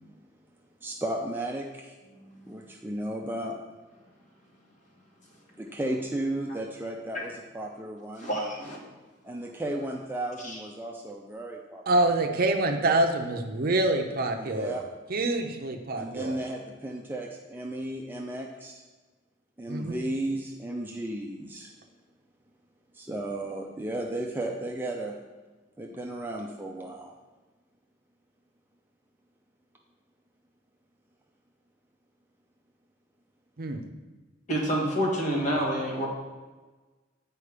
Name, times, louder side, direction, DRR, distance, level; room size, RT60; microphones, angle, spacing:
voice 1, 0.8-1.9 2.4-3.6 5.6-8.3 9.2-11.8 14.3-14.8 15.2-15.3 15.9-18.8 19.6-21.7 22.9-25.2 25.8-27.1, right 1 dB, 10° right, 0 dB, 0.5 m, -34 dB
voice 2, 2.1-2.5 8.2-8.8 10.4-10.6 34.5-36.1, equal, 40° left, -3 dB, 1.8 m, -28 dB
voice 3, 11.9-14.7 15.1-16.4 19.7-19.9 33.6-33.8, right 2 dB, 50° right, 4 dB, 0.7 m, -26 dB
8.4 x 4.5 x 5.0 m, 1.3 s
head